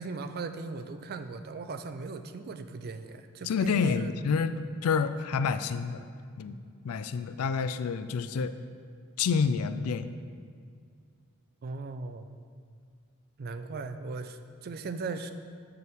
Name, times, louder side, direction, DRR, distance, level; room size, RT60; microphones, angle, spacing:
voice 1, 0.0-4.1 11.6-12.3 13.4-15.3, right 4 dB, 45° right, 9 dB, 0.4 m, -38 dB
voice 2, 3.4-6.1 6.4-6.6 6.8-8.5 9.2-10.1, left 5 dB, 75° left, 12 dB, 0.4 m, -28 dB
8.0 x 6.7 x 3.5 m, 2.2 s
head